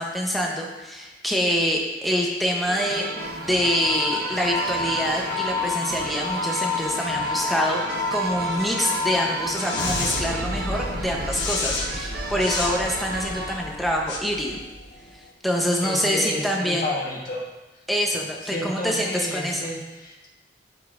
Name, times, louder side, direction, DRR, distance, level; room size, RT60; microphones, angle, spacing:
voice 1, 0.0-3.1 3.5-7.8 8.1-14.6 15.1-16.9 17.9-19.6, equal, ahead, -1 dB, 1.0 m, -25 dB
sound 1, 2.6-13.6, right 2 dB, 55° right, 0.8 m, -35 dB
sound 2, 2.8-15.2, left 3 dB, 65° left, 1.3 m, -30 dB
voice 2, 15.8-17.4 18.4-20.3, left 1 dB, 45° left, -4 dB, 1.6 m, -31 dB
13.0 x 5.4 x 2.6 m, 1.1 s
head